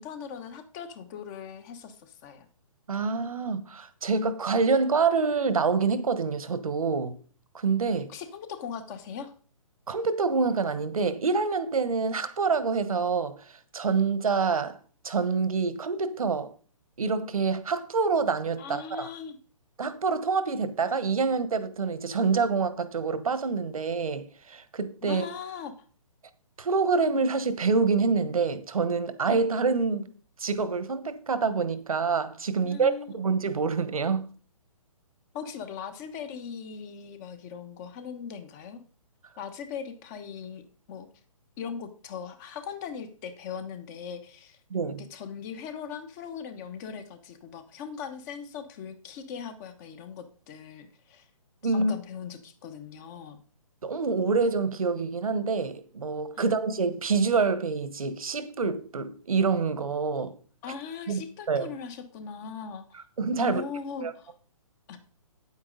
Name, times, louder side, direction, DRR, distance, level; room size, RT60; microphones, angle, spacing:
voice 1, 0.0-2.5 8.1-9.3 18.6-19.4 25.0-25.7 32.5-33.3 35.3-38.8 39.4-40.6 40.9-41.1 41.6-44.6 45.1-51.3 51.6-53.4 56.3-56.4 60.6-63.0 63.4-64.3 64.9-65.0, left 7 dB, 30° left, 1.2 m, -39 dB
voice 2, 2.9-7.2 7.5-8.1 9.9-14.8 15.0-16.5 17.0-19.1 19.8-25.3 26.6-30.1 30.4-34.3 44.7-45.0 51.6-51.9 53.8-60.3 61.1-61.2 61.5-61.7 63.2-63.6 64.0-64.1, right 4 dB, 75° right, 1.3 m, -26 dB
9.0 x 8.7 x 3.9 m
hypercardioid pair, 140°, 18 cm